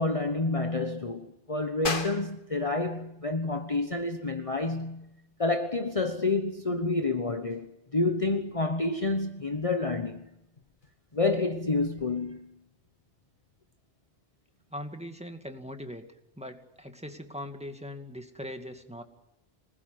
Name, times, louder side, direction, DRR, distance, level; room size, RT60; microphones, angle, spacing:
voice 1, 0.0-5.1 5.4-10.2 11.1-12.5, left 3 dB, 30° left, 1.2 m, -29 dB
sound 1, 1.8-12.1, left 4 dB, 50° left, 1.5 m, -43 dB
voice 2, 14.7-16.0 16.4-19.0, equal, 5° right, 2.3 m, -40 dB
26.0 x 20.5 x 9.7 m
omnidirectional pair, 1.2 m